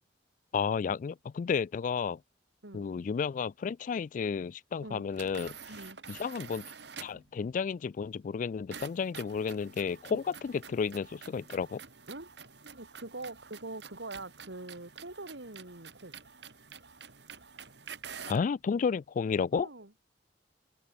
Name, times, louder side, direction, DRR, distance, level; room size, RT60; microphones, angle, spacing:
voice 1, 0.5-2.2 2.7-5.5 6.1-6.6 7.0-11.8 18.3-19.7, left 6 dB, 45° left, 0.3 m, -32 dB
sound 1, 5.1-7.3 8.7-18.5, right 6 dB, 70° right, 4.0 m, -48 dB
voice 2, 5.7-6.0 10.1-10.2 12.1-12.3 12.6-16.2 19.5-20.1, right 2 dB, 90° right, 2.8 m, -44 dB
head